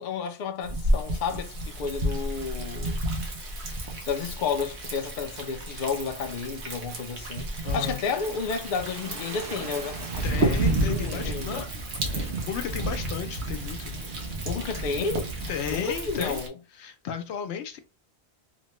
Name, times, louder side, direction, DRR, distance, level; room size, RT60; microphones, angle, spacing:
voice 1, 0.0-3.0 4.1-10.6 10.8-11.7 14.5-15.4 15.7-16.5, left 5 dB, 55° left, 0.6 m, -31 dB
Thunder, 0.6-16.5, right 1 dB, 85° right, 1.1 m, -31 dB
voice 2, 7.6-8.0 10.2-11.7 12.1-14.0 15.5-16.4 16.7-17.8, left 8 dB, 85° left, 0.9 m, -34 dB
sound 1, 8.0-13.0, right 3 dB, 60° right, 1.1 m, -44 dB
3.1 x 2.1 x 2.9 m
omnidirectional pair, 1.1 m